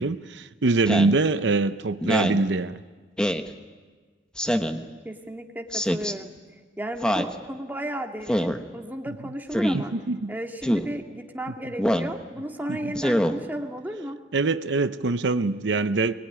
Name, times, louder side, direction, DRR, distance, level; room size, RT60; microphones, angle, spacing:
voice 1, 0.0-2.8 9.7-10.3 12.7-12.9 14.3-16.1, right 3 dB, 75° right, 0.7 m, -24 dB
Speech synthesizer, 0.9-1.2 2.0-2.4 3.2-3.5 4.4-4.8 5.7-6.1 7.0-7.3 8.3-8.6 9.5-9.8 10.6-10.9 11.8-12.1 12.9-13.3, equal, 5° left, 1.1 m, -24 dB
voice 2, 5.0-6.3 6.8-9.9 10.3-14.2, right 1 dB, 10° right, 2.0 m, -34 dB
23.5 x 20.0 x 10.0 m
head